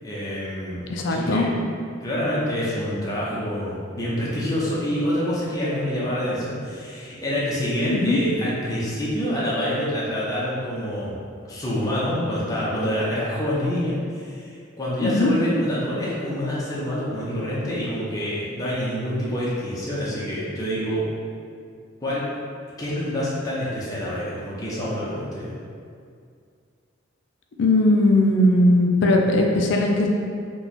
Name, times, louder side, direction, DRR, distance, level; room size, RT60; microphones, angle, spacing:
voice 1, 0.0-1.5 2.0-11.1 11.4-21.1 22.0-22.2 22.8-25.6, equal, 20° left, -8 dB, 0.6 m, -27 dB
voice 2, 0.9-1.5 7.9-8.2 15.0-15.3 27.6-30.1, left 1 dB, 65° left, 1 dB, 0.4 m, -19 dB
3.0 x 2.2 x 4.0 m, 2.3 s
head